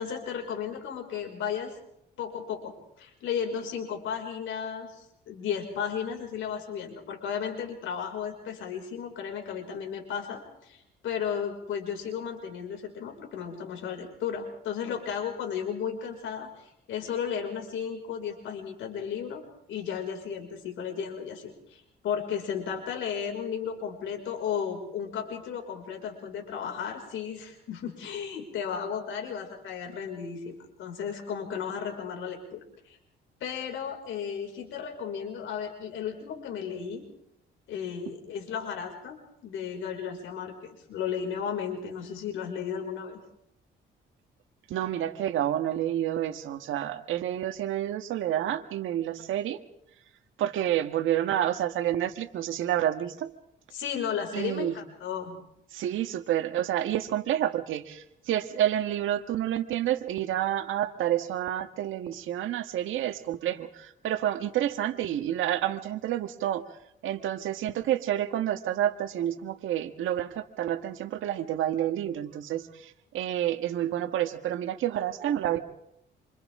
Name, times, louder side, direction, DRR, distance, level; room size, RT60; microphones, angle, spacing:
voice 1, 0.0-1.8 2.2-19.4 19.7-33.0 33.4-37.0 37.7-39.2 39.4-43.2 53.7-55.4, left 7 dB, 80° left, 2 dB, 5.8 m, -34 dB
voice 2, 44.7-49.6 50.4-53.3 54.3-54.7 55.7-66.6 67.0-75.6, right 11 dB, 80° right, 8 dB, 1.6 m, -29 dB
27.5 x 27.5 x 3.7 m, 0.78 s
cardioid pair, 90°, 20 cm